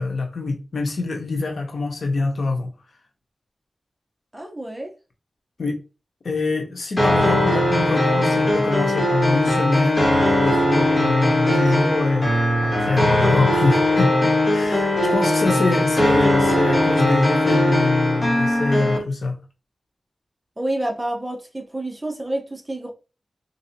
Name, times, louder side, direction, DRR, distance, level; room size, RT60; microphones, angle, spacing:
voice 1, 0.0-2.7 5.6-5.8 6.2-12.4 12.6-19.4, left 3 dB, 85° left, 0.9 m, -24 dB
voice 2, 4.3-4.9 15.0-15.1 20.6-22.9, right 1 dB, 15° right, 0.9 m, -28 dB
sound 1, 7.0-19.0, left 1 dB, 40° left, 1.6 m, -19 dB
3.8 x 2.7 x 2.8 m
wide cardioid pair, 100°, 0 cm